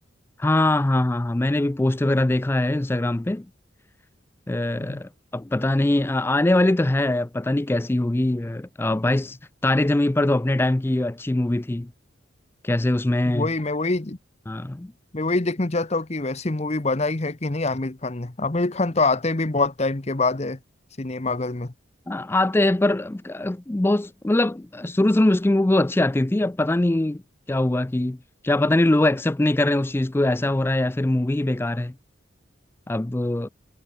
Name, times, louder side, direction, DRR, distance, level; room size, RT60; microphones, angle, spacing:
voice 1, 0.4-3.5 4.5-9.4 9.6-11.9 12.6-13.5 14.5-14.9 22.1-27.2 27.5-28.2 28.4-31.9 32.9-33.5, left 1 dB, 10° left, 0.4 m, -22 dB
voice 2, 13.3-14.2 15.1-20.6 21.0-21.7, left 3 dB, 35° left, 1.0 m, -25 dB
head